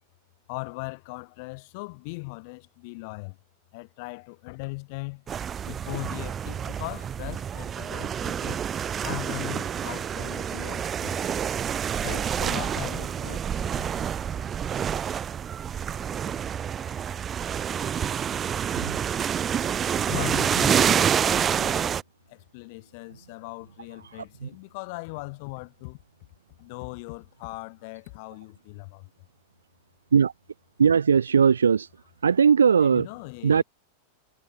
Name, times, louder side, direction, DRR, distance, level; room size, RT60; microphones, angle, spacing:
voice 1, 0.5-3.4 3.7-5.2 5.6-8.6 9.0-11.4 12.0-14.0 20.1-22.0 22.3-26.0 26.6-29.1 32.8-33.6, left 29 dB, 45° left, 5.2 m, -39 dB
sound 1, 5.3-22.0, right 8 dB, 25° right, 5.0 m, -28 dB
voice 2, 30.8-31.9 32.2-33.1 33.4-33.6, right 6 dB, 70° right, 1.6 m, -19 dB
figure-of-eight pair, 90°, 0 cm